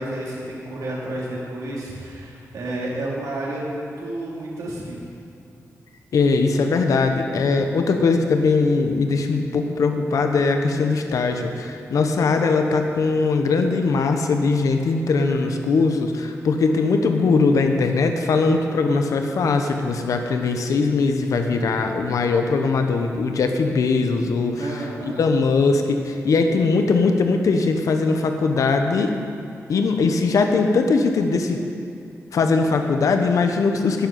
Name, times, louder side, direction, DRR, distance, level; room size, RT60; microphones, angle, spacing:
voice 1, 0.0-5.0 24.6-25.2, right 1 dB, 85° right, -5 dB, 3.5 m, -30 dB
voice 2, 6.1-29.1 29.7-31.6 32.3-34.1, left 4 dB, 80° left, 5 dB, 0.9 m, -20 dB
12.0 x 7.6 x 9.3 m, 2.4 s
wide cardioid pair, 150°, 6 cm